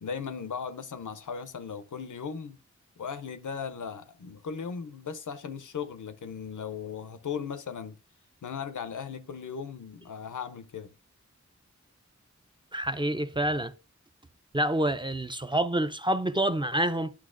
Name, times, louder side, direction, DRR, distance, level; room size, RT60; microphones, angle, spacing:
voice 1, 0.0-2.6 3.0-8.0 8.4-10.9, left 6 dB, 90° left, 0.6 m, -37 dB
voice 2, 12.7-13.7 14.5-17.1, right 1 dB, 15° right, 0.4 m, -27 dB
10.0 x 5.7 x 2.5 m
wide cardioid pair, 45°, 30 cm